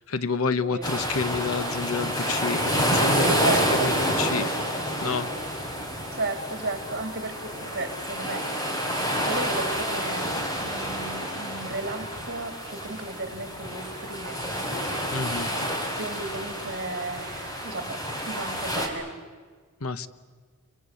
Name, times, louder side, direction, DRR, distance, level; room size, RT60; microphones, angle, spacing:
voice 1, 0.0-4.5 5.0-5.3 15.1-15.5 19.8-20.1, left 4 dB, 85° left, 15 dB, 1.1 m, -29 dB
sound 1, 0.8-18.9, equal, 20° left, 3.9 m, -29 dB
voice 2, 3.4-3.9 6.2-8.7 9.2-10.3 10.6-14.7 15.9-19.1, right 2 dB, 50° right, 8 dB, 3.1 m, -34 dB
27.5 x 23.5 x 8.4 m, 1.5 s
head